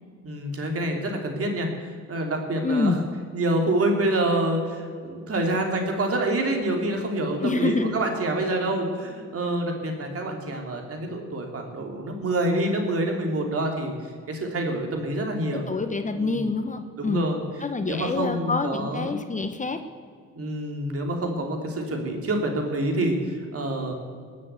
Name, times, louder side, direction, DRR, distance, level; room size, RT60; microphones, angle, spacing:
voice 1, 0.2-1.7 2.1-3.0 3.3-13.9 14.3-15.6 16.1-16.4 17.0-17.4 17.9-19.2 20.3-23.2 23.5-23.9, right 1 dB, 50° right, 2 dB, 3.2 m, -27 dB
voice 2, 2.6-3.0 7.4-7.9 15.5-17.3 17.6-19.8, left 3 dB, 25° left, 7 dB, 1.1 m, -27 dB
20.5 x 7.4 x 8.2 m, 2.1 s
cardioid pair, 90°, 30 cm